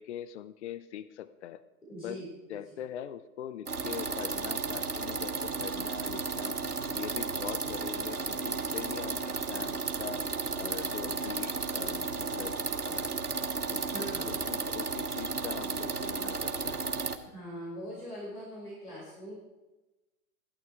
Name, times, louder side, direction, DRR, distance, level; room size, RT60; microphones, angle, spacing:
voice 1, 0.0-1.6 2.0-6.6 6.9-10.2 10.6-13.1 13.7-16.8, left 10 dB, 50° left, 14 dB, 0.8 m, -42 dB
voice 2, 1.9-2.8 13.9-14.5 17.3-19.3, equal, 90° left, -5 dB, 5.4 m, -42 dB
sound 1, 3.7-17.2, right 4 dB, 80° right, 1.3 m, -33 dB
16.0 x 12.0 x 4.7 m, 1.1 s
figure-of-eight pair, 105°, 45 cm